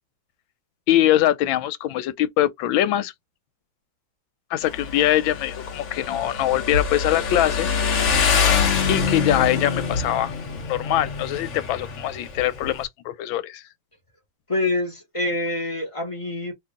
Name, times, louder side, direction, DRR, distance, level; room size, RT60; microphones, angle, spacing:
voice 1, 0.9-3.1 4.5-7.7 8.9-10.3 10.7-13.6, left 13 dB, 85° left, 1.4 m, -22 dB
Motorcycle, 4.6-12.8, left 6 dB, 55° left, 0.8 m, -25 dB
voice 2, 14.5-16.5, left 2 dB, 25° left, 0.7 m, -26 dB
3.0 x 2.8 x 3.6 m
omnidirectional pair, 2.1 m